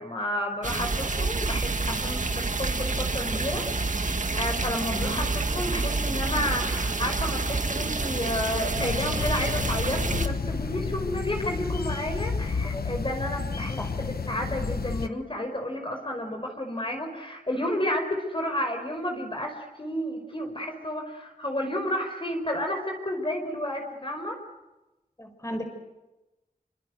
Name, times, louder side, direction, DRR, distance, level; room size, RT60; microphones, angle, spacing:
voice 1, 0.0-24.4, left 1 dB, 35° left, 4 dB, 5.1 m, -31 dB
sound 1, 0.6-10.3, right 3 dB, 55° right, 1.9 m, -28 dB
voice 2, 4.9-5.2 12.6-12.9 13.8-13.9 25.2-25.6, equal, 20° left, 6 dB, 5.3 m, -35 dB
sound 2, 8.8-15.1, left 4 dB, 90° left, 1.2 m, -31 dB
28.0 x 25.0 x 8.0 m, 1.0 s
wide cardioid pair, 80°, 15 cm